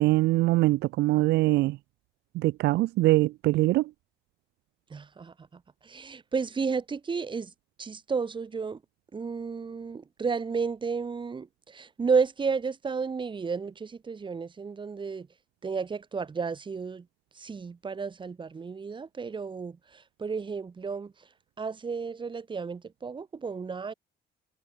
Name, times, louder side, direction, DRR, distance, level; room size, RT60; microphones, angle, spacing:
voice 1, 0.0-1.8 2.3-3.9, right 18 dB, 80° right, 0.8 m, -23 dB
voice 2, 4.9-7.5 7.8-8.8 9.1-15.3 15.6-17.1 17.3-21.1 21.6-23.9, right 5 dB, 30° right, 3.2 m, -32 dB
cardioid pair, 110°, 17 cm